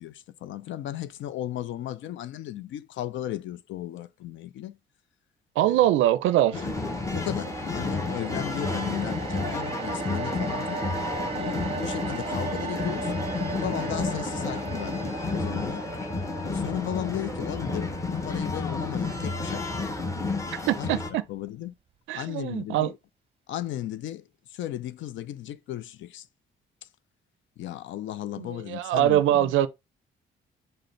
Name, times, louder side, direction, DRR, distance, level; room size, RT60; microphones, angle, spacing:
voice 1, 0.0-4.8 5.6-5.9 6.5-6.7 7.1-10.8 11.3-13.1 13.5-15.9 16.4-19.9 20.8-21.0 21.3-21.7 22.1-23.0 23.5-26.3 27.6-29.5, left 13 dB, 75° left, 0.4 m, -35 dB
voice 2, 5.6-6.6 20.7-21.2 22.1-22.9 28.4-29.7, right 13 dB, 85° right, 0.4 m, -23 dB
sound 1, 6.2-20.6 20.9-21.1, right 5 dB, 30° right, 0.6 m, -38 dB
sound 2, 6.5-21.1, left 3 dB, 15° left, 0.9 m, -31 dB
5.1 x 2.0 x 4.3 m
cardioid pair, 90°, 20 cm